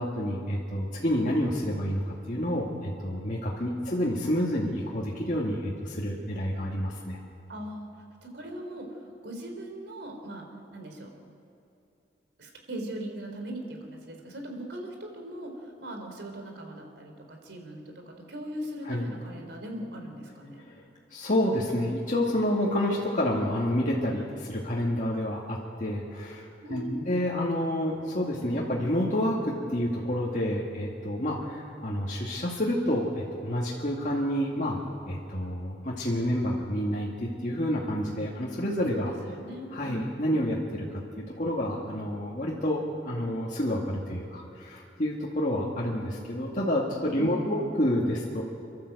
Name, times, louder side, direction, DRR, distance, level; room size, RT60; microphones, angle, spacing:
voice 1, 0.0-7.2 18.8-19.1 20.5-20.8 21.1-34.8 35.1-39.1 39.7-48.4, equal, 40° left, -4 dB, 2.1 m, -29 dB
voice 2, 7.5-7.9 8.2-10.5 10.7-11.1 12.4-20.6 26.6-27.1 38.9-40.1 47.2-47.7, right 1 dB, 70° right, 3 dB, 3.7 m, -39 dB
29.5 x 12.5 x 8.0 m, 2.7 s
head